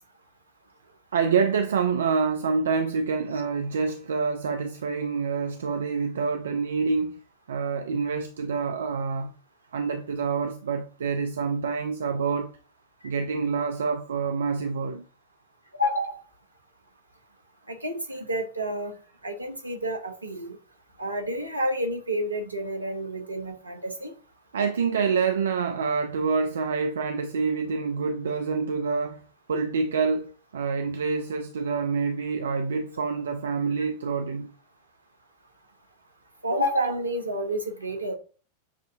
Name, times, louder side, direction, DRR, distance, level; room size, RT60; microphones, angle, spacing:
voice 1, 1.1-7.2 7.5-9.3 9.7-12.5 13.0-15.0 24.5-34.5, right 5 dB, 65° right, 0.3 m, -27 dB
voice 2, 15.7-16.2 17.7-18.9 19.2-20.6 21.0-24.1 36.4-38.1, equal, 80° right, 0.8 m, -29 dB
7.0 x 2.6 x 2.6 m
figure-of-eight pair, 90°, 0 cm